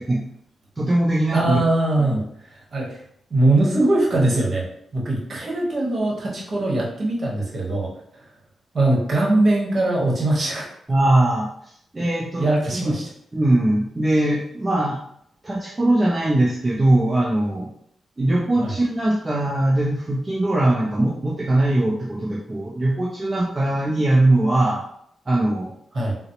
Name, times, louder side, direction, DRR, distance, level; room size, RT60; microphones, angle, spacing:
voice 1, 0.8-1.6 2.0-2.2 10.9-11.5 11.9-12.5 13.3-15.0 15.4-17.7 18.2-24.8 25.3-25.7, right 1 dB, 25° right, -3 dB, 0.5 m, -20 dB
voice 2, 1.3-3.0 3.3-4.7 4.9-8.2 8.7-10.7 12.4-13.0 18.5-18.7 25.9-26.1, right 2 dB, 50° right, -2 dB, 1.1 m, -21 dB
3.8 x 2.0 x 2.9 m, 0.69 s
cardioid pair, 75°, 0 cm